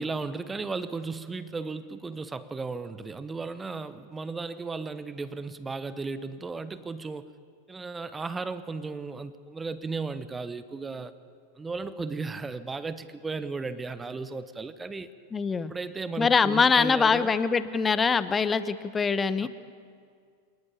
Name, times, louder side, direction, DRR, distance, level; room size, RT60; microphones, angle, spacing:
voice 1, 0.0-7.2 7.7-11.1 11.6-15.1 15.7-17.3 19.4-19.5, right 4 dB, 15° right, 14 dB, 1.0 m, -35 dB
voice 2, 15.3-15.7 16.2-19.5, left 5 dB, 15° left, 15 dB, 1.0 m, -23 dB
28.0 x 19.0 x 8.5 m, 2.1 s
figure-of-eight pair, 90°, 0 cm